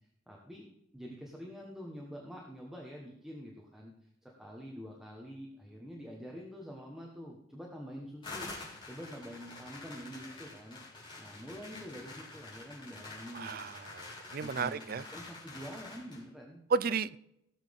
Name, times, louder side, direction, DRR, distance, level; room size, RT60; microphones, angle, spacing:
voice 1, 0.3-0.7 0.9-3.9 4.2-8.5 8.8-10.8 11.2-14.0 14.4-16.6, equal, 5° right, -2 dB, 1.3 m, -46 dB
sound 1, 8.2-16.2, left 3 dB, 25° left, 4.0 m, -47 dB
voice 2, 13.3-15.0 16.7-17.2, right 5 dB, 50° right, 16 dB, 0.4 m, -33 dB
17.0 x 7.5 x 3.6 m, 0.80 s
head